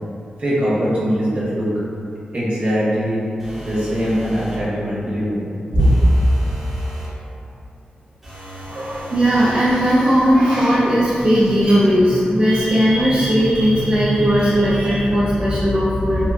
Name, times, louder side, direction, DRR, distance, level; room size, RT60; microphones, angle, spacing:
voice 1, 0.4-1.7 2.3-3.2 3.6-5.5 5.7-5.9, equal, 50° right, -9 dB, 0.9 m, -20 dB
sound 1, 3.4-4.7 5.8-7.2 8.2-9.7, right 1 dB, 5° right, 0.9 m, -34 dB
voice 2, 8.7-16.3, equal, 35° right, -10 dB, 0.4 m, -17 dB
3.5 x 2.1 x 2.4 m, 2.6 s
wide cardioid pair, 105°, 3 cm